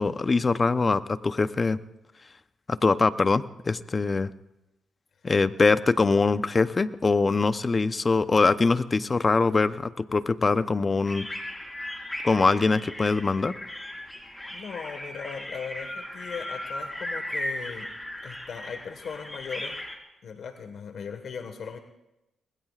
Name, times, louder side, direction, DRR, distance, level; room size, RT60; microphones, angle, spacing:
voice 1, 0.0-1.8 2.7-4.3 5.2-11.3 12.2-13.6, left 3 dB, 35° left, 13 dB, 0.8 m, -23 dB
sound 1, 11.1-20.0, left 1 dB, 15° left, 4.4 m, -37 dB
voice 2, 14.5-17.9 18.2-19.8 20.2-21.8, left 6 dB, 70° left, 7 dB, 1.5 m, -38 dB
25.5 x 20.5 x 2.5 m, 0.92 s
supercardioid pair, 60°, 0 cm